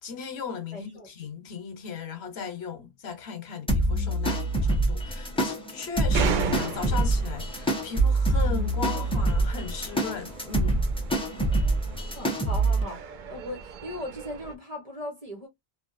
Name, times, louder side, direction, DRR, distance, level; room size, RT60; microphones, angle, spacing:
voice 1, 0.0-10.8, left 6 dB, 85° left, 1.1 m, -37 dB
voice 2, 0.7-1.1 11.3-11.8 12.1-15.5, left 1 dB, 35° right, 1.1 m, -39 dB
sound 1, 3.7-12.8, right 2 dB, 5° left, 0.6 m, -25 dB
sound 2, 6.1-14.5, right 6 dB, 60° right, 0.6 m, -36 dB
2.8 x 2.4 x 2.5 m
omnidirectional pair, 1.1 m